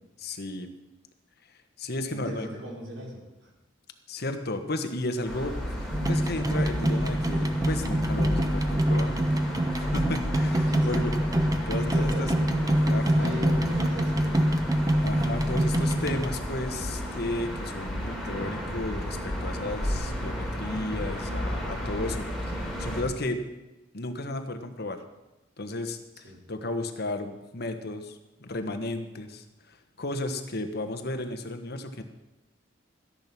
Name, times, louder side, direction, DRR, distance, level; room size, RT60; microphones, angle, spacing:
voice 1, 0.2-0.7 1.8-2.5 4.1-11.1 11.7-12.3 12.8-13.5 15.0-23.4 23.9-25.0 25.6-32.0, left 2 dB, 55° left, 7 dB, 1.3 m, -34 dB
voice 2, 2.1-3.5 10.6-11.1 11.8-12.8 13.2-14.5 26.2-26.4, equal, 90° right, -3 dB, 5.2 m, -39 dB
sound 1, 5.2-23.0, equal, ahead, 3.6 m, -33 dB
sound 2, 5.9-16.3, right 1 dB, 20° right, 1.0 m, -25 dB
14.0 x 10.5 x 6.0 m, 1.0 s
head